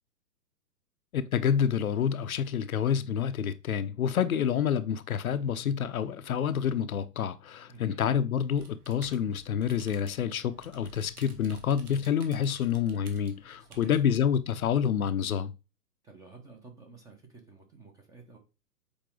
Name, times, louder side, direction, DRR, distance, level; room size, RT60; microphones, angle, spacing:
voice 1, 1.1-15.5, left 8 dB, 55° left, 0.7 m, -28 dB
voice 2, 7.7-8.0 13.6-14.0 16.0-18.4, right 4 dB, 5° right, 0.8 m, -52 dB
sound 1, 8.6-14.0, right 5 dB, 60° right, 1.9 m, -53 dB
6.9 x 4.4 x 3.7 m
figure-of-eight pair, 120°, 50 cm